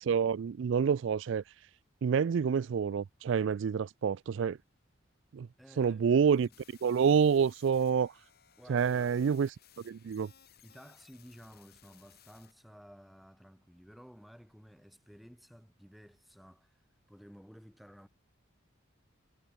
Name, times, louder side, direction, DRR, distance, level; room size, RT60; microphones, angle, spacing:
voice 1, 0.0-1.4 2.0-4.6 5.3-5.5 5.8-6.5 6.8-8.1 8.7-9.5 9.8-10.3, right 6 dB, 60° right, 0.3 m, -27 dB
voice 2, 5.6-6.5 8.6-9.2 10.6-16.8 17.1-18.1, equal, ahead, 2.7 m, -55 dB
sound 1, 6.3-12.5, left 10 dB, 50° left, 5.5 m, -61 dB
head